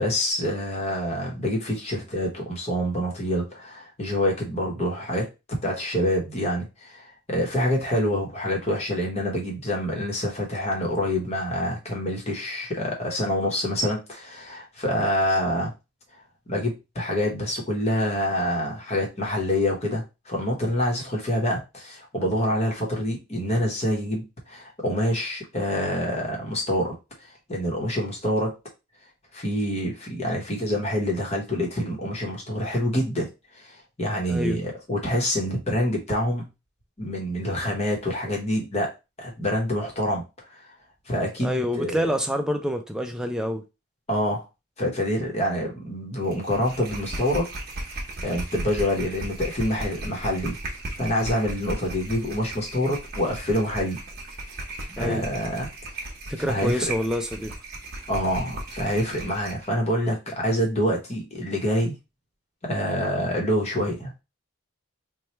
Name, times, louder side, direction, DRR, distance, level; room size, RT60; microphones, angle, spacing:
voice 1, 0.0-5.2 5.6-15.7 16.5-26.9 27.2-28.5 29.3-33.3 33.5-36.5 37.0-38.9 39.2-40.6 41.1-42.1 44.1-44.4 44.8-47.5 48.2-50.6 51.0-54.0 55.0-55.7 55.9-56.1 56.5-56.8 58.1-61.9 62.6-64.1, equal, 30° left, 1.1 m, -26 dB
voice 2, 34.3-34.6 41.4-43.6 54.9-55.3 56.3-57.5, equal, 5° right, 0.4 m, -27 dB
sound 1, 46.3-59.7, right 1 dB, 45° right, 0.9 m, -36 dB
3.1 x 2.3 x 4.2 m
head